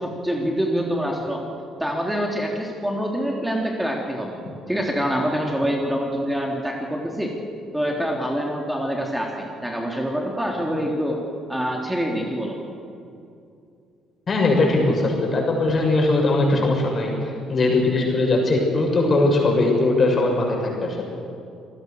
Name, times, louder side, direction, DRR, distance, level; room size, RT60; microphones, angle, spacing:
voice 1, 0.0-1.4 1.8-4.4 4.7-7.4 7.7-11.2 11.5-12.6, equal, 5° right, 0 dB, 3.6 m, -25 dB
voice 2, 14.3-21.0, left 2 dB, 40° left, 1 dB, 7.1 m, -20 dB
27.5 x 18.5 x 6.7 m, 2.6 s
figure-of-eight pair, 50°, 0 cm